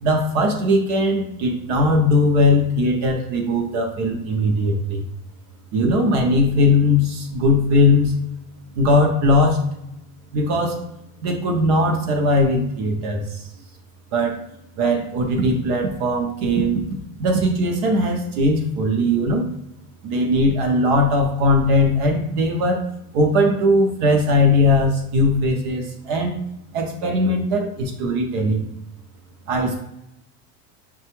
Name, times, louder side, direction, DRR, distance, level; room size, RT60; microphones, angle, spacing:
voice 1, 0.0-5.0 5.7-8.2 8.8-9.6 10.3-10.8 11.2-13.4 14.1-14.3 14.8-16.8 17.2-19.5 20.0-22.8 23.1-26.3 26.7-28.6 29.5-29.8, left 1 dB, 45° right, 2 dB, 0.6 m, -19 dB
5.8 x 2.3 x 2.9 m, 0.82 s
supercardioid pair, 170°, 46 cm